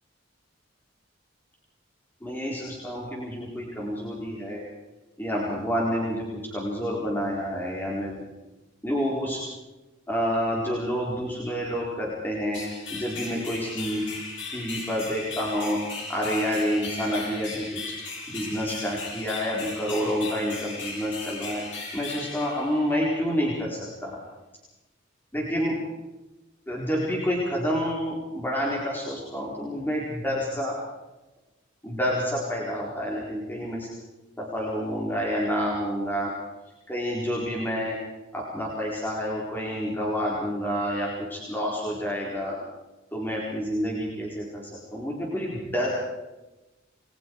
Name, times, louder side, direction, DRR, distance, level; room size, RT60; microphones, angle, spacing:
voice 1, 2.2-4.6 5.2-8.2 8.8-9.4 10.1-12.6 12.9-14.0 14.5-15.8 16.1-17.9 18.3-21.6 21.9-24.2 25.3-25.8 26.7-30.8 31.8-33.9 34.4-36.3 36.9-38.0 38.3-42.6 43.1-45.9, equal, 10° left, -4 dB, 4.3 m, -28 dB
sound 1, 12.5-23.2, left 3 dB, 65° left, 7.5 m, -37 dB
29.5 x 21.5 x 4.7 m, 1.0 s
head